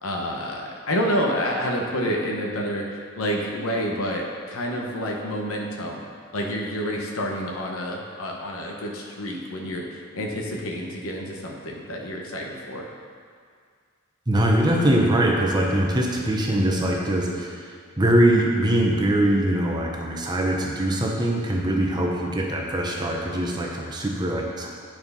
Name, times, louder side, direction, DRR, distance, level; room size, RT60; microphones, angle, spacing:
voice 1, 0.0-6.0 6.3-12.9, equal, 75° left, -1 dB, 1.0 m, -28 dB
voice 2, 14.3-24.7, right 1 dB, 20° right, -1 dB, 0.8 m, -22 dB
9.3 x 4.5 x 5.5 m, 2.1 s
head